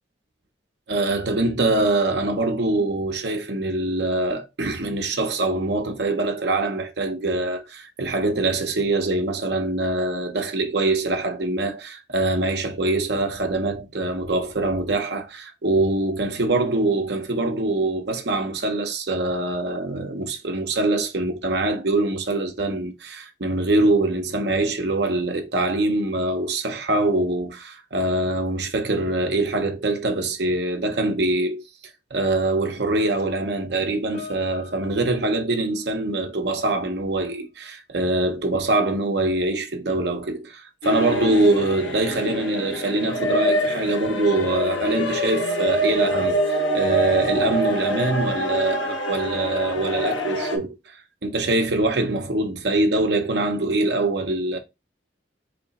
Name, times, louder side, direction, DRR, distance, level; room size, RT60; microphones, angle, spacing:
voice 1, 0.9-31.6 32.1-51.0 51.2-54.6, right 2 dB, 60° right, 0.8 m, -24 dB
Piano, 34.1-36.8 37.0-37.4 38.2-38.3, left 6 dB, 35° left, 1.3 m, -46 dB
sound 1, 40.8-50.6, equal, 85° left, 0.9 m, -25 dB
3.2 x 3.0 x 4.1 m
head